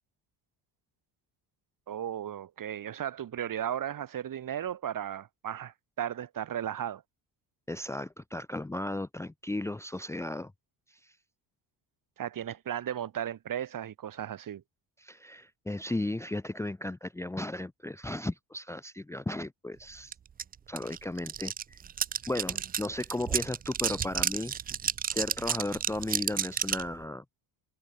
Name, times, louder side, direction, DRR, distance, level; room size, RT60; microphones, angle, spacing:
voice 1, 1.9-7.0 12.2-14.6, right 10 dB, 40° right, 3.9 m, -35 dB
voice 2, 7.7-10.5 10.9-11.2 15.0-20.1 20.7-21.8 22.3-24.5 25.1-27.2, left 1 dB, 5° left, 1.0 m, -35 dB
sound 1, 20.1-20.2 20.4-26.9, right 8 dB, 20° right, 0.3 m, -31 dB
cardioid pair, 155°, 48 cm